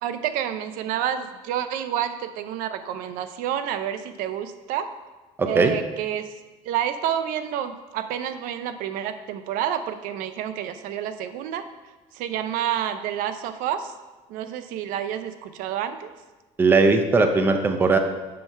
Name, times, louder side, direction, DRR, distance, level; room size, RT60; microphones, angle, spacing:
voice 1, 0.0-4.9 5.5-6.3 6.6-11.6 12.1-13.9 14.3-16.1, right 10 dB, 70° right, 10 dB, 0.6 m, -29 dB
voice 2, 5.4-5.7 16.6-18.0, right 3 dB, 15° right, 6 dB, 0.6 m, -19 dB
7.6 x 5.6 x 5.5 m, 1.2 s
cardioid pair, 165°, 15 cm